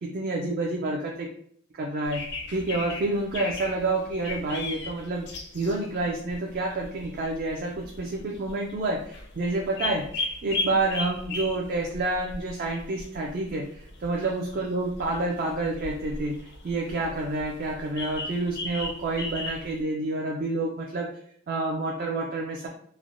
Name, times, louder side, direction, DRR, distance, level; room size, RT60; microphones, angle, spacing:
voice 1, 0.0-1.3 1.7-2.2 2.5-5.3 5.5-21.1 21.5-22.7, right 2 dB, 45° right, -1 dB, 0.3 m, -29 dB
sound 1, 2.0-19.8, left 2 dB, 55° left, 0.5 m, -37 dB
3.1 x 2.1 x 2.5 m, 0.64 s
head